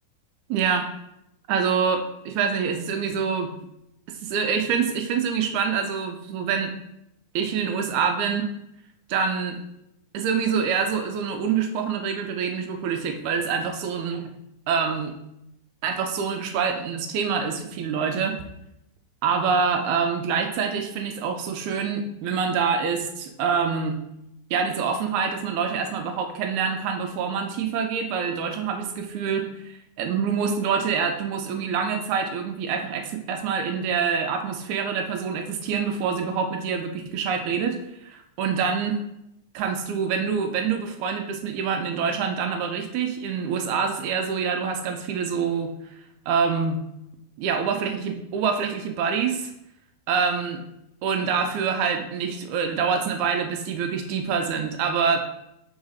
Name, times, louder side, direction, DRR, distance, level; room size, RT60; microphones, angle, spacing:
voice 1, 0.5-0.9 1.5-3.5 4.1-6.7 7.4-8.5 9.1-9.6 10.1-14.3 14.7-15.1 15.8-18.4 19.2-24.0 24.5-39.0 39.5-45.7 46.3-46.8 47.4-49.5 50.1-50.6 51.0-55.2, right 6 dB, 80° right, 5 dB, 2.0 m, -26 dB
4.9 x 3.9 x 5.6 m, 0.82 s
omnidirectional pair, 3.4 m